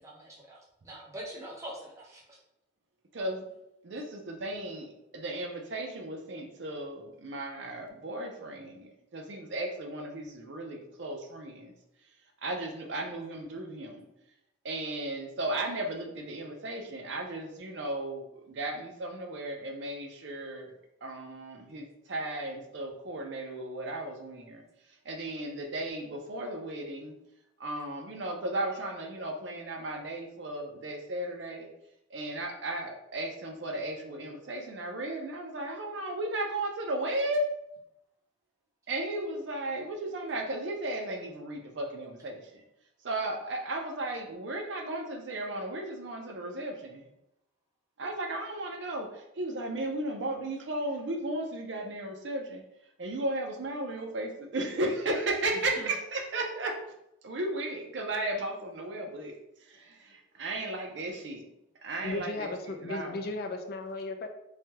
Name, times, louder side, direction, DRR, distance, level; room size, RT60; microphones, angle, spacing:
voice 1, 0.0-2.4 5.0-5.1 6.3-6.5 10.2-11.0 13.9-14.2 17.7-17.8 55.5-55.9, right 1 dB, 15° right, -4 dB, 0.7 m, -46 dB
voice 2, 3.1-3.4 3.8-11.7 12.4-14.1 14.6-20.7 21.0-24.6 25.1-27.1 27.6-31.7 32.1-37.5 38.9-42.4 43.0-47.0 48.0-52.6 53.0-56.8 57.2-59.3 59.7-60.0 60.4-61.4 61.8-63.3, right 1 dB, 70° right, 3 dB, 0.5 m, -35 dB
voice 3, 62.0-64.3, left 2 dB, 50° left, 5 dB, 0.4 m, -35 dB
3.2 x 2.2 x 2.8 m, 0.83 s
head